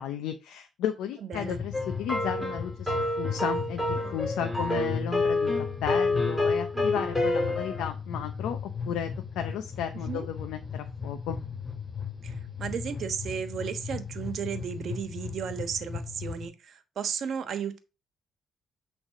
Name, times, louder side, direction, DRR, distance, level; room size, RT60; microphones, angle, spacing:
voice 1, 0.0-2.9 3.2-5.5 5.8-8.6 8.9-11.4, left 9 dB, 85° left, 6 dB, 0.6 m, -34 dB
voice 2, 1.2-1.6 9.9-10.3 12.2-17.8, right 7 dB, 65° right, 8 dB, 1.2 m, -34 dB
sound 1, 1.3-16.5, left 6 dB, 30° left, 4.7 m, -37 dB
sound 2, 1.7-7.9, left 2 dB, ahead, 4.2 m, -28 dB
8.9 x 3.4 x 5.0 m, 0.30 s
cardioid pair, 90°, 0 cm